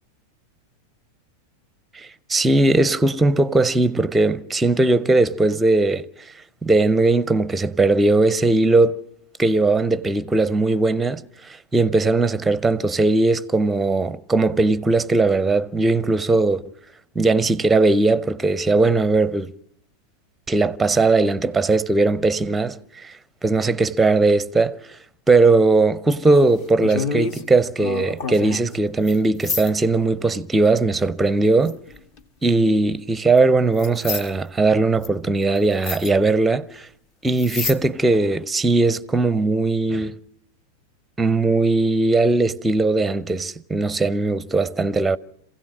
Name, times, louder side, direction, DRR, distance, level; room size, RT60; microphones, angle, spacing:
voice 1, 2.0-6.1 6.6-9.0 9.4-16.6 17.2-19.5 20.5-23.1 23.4-24.8 25.3-31.8 32.4-36.9 37.2-40.1 41.2-45.2, right 3 dB, 10° right, 0.7 m, -19 dB
sound 1, 26.3-27.4 27.8-28.8 29.1-29.2 29.4-29.7 31.7-32.2 33.4-33.5 33.8-34.3 35.0-35.1 35.6-35.7 35.8-36.1 37.3-37.8 38.1-38.2, left 5 dB, 40° left, 1.6 m, -28 dB
27.0 x 16.5 x 6.1 m
figure-of-eight pair, 90°, 0 cm